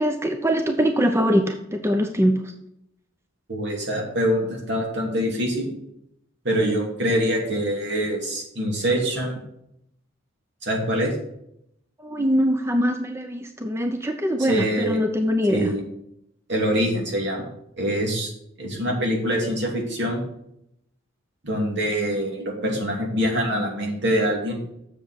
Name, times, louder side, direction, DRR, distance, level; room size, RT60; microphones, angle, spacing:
voice 1, 0.0-2.4 12.0-15.7, equal, 15° right, 5 dB, 0.6 m, -22 dB
voice 2, 3.5-5.7 6.4-9.4 10.6-11.1 14.4-15.0 15.5-15.8 16.5-17.5 17.8-18.3 18.6-20.2 21.4-24.6, equal, 60° right, 0 dB, 2.7 m, -24 dB
7.5 x 7.0 x 5.8 m, 0.77 s
head